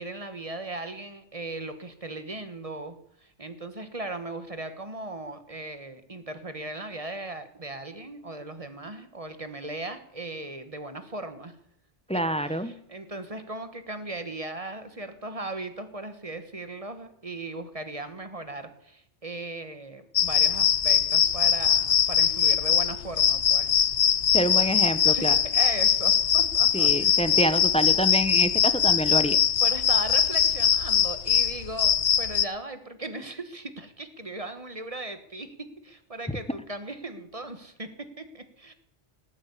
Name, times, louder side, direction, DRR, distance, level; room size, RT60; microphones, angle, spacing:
voice 1, 0.0-3.0 3.2-11.5 12.4-23.8 25.0-27.2 29.6-38.7, right 2 dB, 30° right, 9 dB, 1.4 m, -38 dB
voice 2, 12.1-12.7 24.3-25.4 26.7-29.4, right 1 dB, 5° left, 12 dB, 0.8 m, -26 dB
sound 1, 20.2-32.5, left 8 dB, 60° left, 0.9 m, -22 dB
18.0 x 8.7 x 8.3 m, 0.74 s
omnidirectional pair, 1.2 m